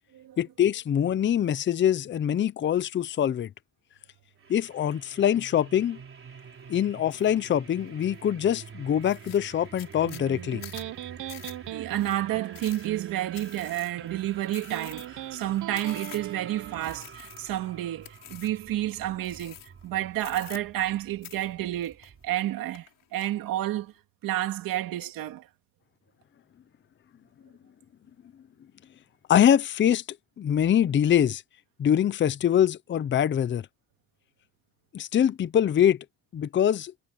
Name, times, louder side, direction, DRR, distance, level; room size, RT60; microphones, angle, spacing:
voice 1, 0.4-3.5 4.5-6.0 6.7-10.6 29.3-30.0 30.4-31.4 31.8-33.7 34.9-36.0 36.3-36.9, left 10 dB, 35° left, 0.6 m, -24 dB
sound 1, 4.4-22.3, right 6 dB, 40° right, 4.2 m, -48 dB
sound 2, 7.1-7.4 7.8-8.3 8.7-8.8 9.0-16.4 16.8-17.7 18.0-18.6 19.2-19.9 20.2-21.0 21.2-22.4 22.7-23.3, left 12 dB, 75° left, 5.6 m, -47 dB
Electric guitar, 10.0-17.0, right 13 dB, 65° right, 0.8 m, -40 dB
voice 2, 11.4-23.9 24.2-25.5, right 14 dB, 85° right, 2.5 m, -30 dB
cardioid pair, 135°, 33 cm